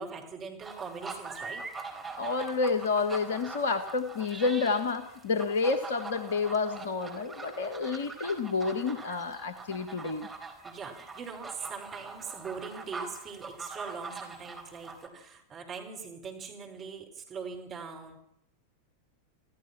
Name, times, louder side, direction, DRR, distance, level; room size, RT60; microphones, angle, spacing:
voice 1, 0.0-1.6 10.6-18.2, right 5 dB, 25° right, 2 dB, 5.1 m, -41 dB
sound 1, 0.6-15.1, right 4 dB, 10° right, 4.2 m, -43 dB
voice 2, 2.2-10.3, left 4 dB, 60° left, 10 dB, 1.4 m, -29 dB
28.0 x 16.5 x 6.1 m, 0.76 s
figure-of-eight pair, 90°, 0 cm